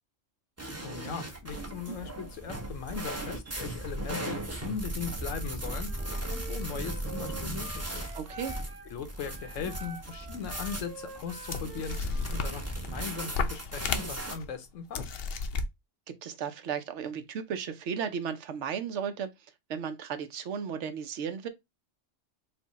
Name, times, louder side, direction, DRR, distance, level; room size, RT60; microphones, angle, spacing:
sound 1, 0.6-14.4, right 1 dB, 15° right, 0.6 m, -37 dB
voice 1, 0.8-5.9 6.3-8.1 8.9-15.1, left 6 dB, 85° left, 1.1 m, -39 dB
Wind instrument woodwind instrument, 5.8-8.9 9.2-12.6, right 3 dB, 30° right, 1.5 m, -47 dB
voice 2, 8.1-8.5 16.1-19.3 19.7-21.5, right 7 dB, 70° right, 1.0 m, -35 dB
sound 2, 10.4-10.5 11.2-11.3 11.5-12.9 13.3-14.5 14.9-15.7, left 4 dB, 60° left, 0.7 m, -33 dB
4.5 x 2.2 x 4.0 m
omnidirectional pair, 1.3 m